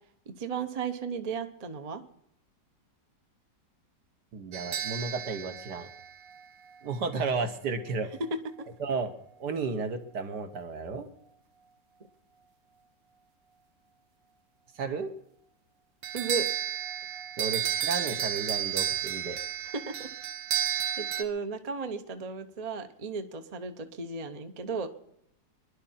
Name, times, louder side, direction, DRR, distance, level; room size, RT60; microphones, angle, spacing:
voice 1, 0.3-2.0 16.1-16.5 19.7-20.1 21.0-24.9, right 5 dB, 35° right, 8 dB, 0.7 m, -35 dB
voice 2, 4.3-5.9 6.8-8.1 8.8-9.1 9.4-11.1 14.7-15.1 17.4-19.4, right 4 dB, 65° right, 6 dB, 1.8 m, -33 dB
sound 1, 4.5-6.8 16.0-21.2, right 10 dB, 90° right, 1.6 m, -32 dB
22.5 x 11.0 x 4.3 m, 0.76 s
omnidirectional pair, 1.9 m